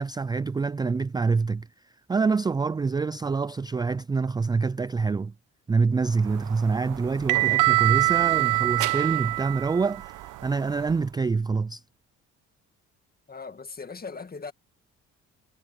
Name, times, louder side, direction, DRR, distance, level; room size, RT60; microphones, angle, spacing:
voice 1, 0.0-1.7 2.1-5.3 5.7-11.8, right 4 dB, 15° right, 0.3 m, -26 dB
sound 1, 6.2-11.0, right 22 dB, 85° right, 1.2 m, -25 dB
voice 2, 13.3-14.5, left 4 dB, 30° left, 2.2 m, -39 dB
cardioid pair, 80°, 30 cm